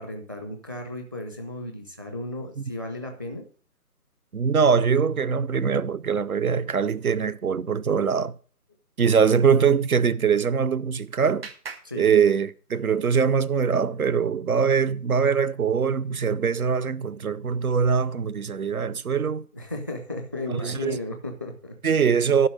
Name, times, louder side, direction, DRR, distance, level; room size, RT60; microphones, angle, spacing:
voice 1, 0.0-3.4 11.8-12.1 19.5-21.7, left 1 dB, 15° right, 0.7 m, -34 dB
voice 2, 4.3-8.4 9.0-11.5 11.9-19.5 20.5-21.0 21.8-22.5, right 6 dB, 65° right, 0.7 m, -22 dB
Clapping, 10.3-12.9, right 4 dB, 40° right, 1.3 m, -45 dB
11.5 x 5.6 x 6.4 m
figure-of-eight pair, 155°, 47 cm